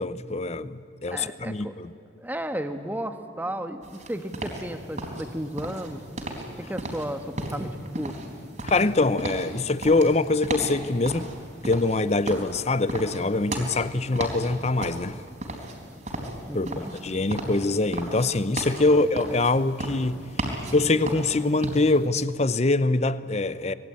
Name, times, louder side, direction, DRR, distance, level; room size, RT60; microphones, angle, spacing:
voice 1, 0.0-1.9 8.6-11.3 11.6-15.2 16.5-20.2 20.7-23.7, left 2 dB, 35° left, 0.7 m, -24 dB
voice 2, 1.1-1.7 2.2-6.0 6.6-8.2 16.5-16.9 18.8-19.0, right 1 dB, 10° right, 1.3 m, -34 dB
sound 1, 3.8-22.1, right 1 dB, 40° right, 4.1 m, -35 dB
26.0 x 21.0 x 8.9 m
head